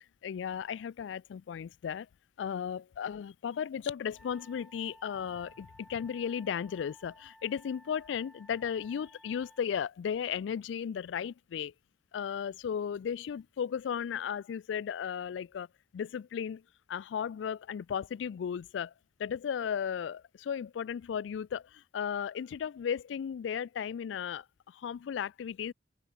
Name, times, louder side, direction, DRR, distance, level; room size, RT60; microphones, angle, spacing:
voice 1, 0.2-2.1 2.4-11.7 12.1-15.7 15.9-16.6 16.9-18.9 19.2-25.7, left 8 dB, 85° left, 0.3 m, -35 dB
Wind instrument woodwind instrument, 4.1-9.7, equal, ahead, 4.0 m, -57 dB
head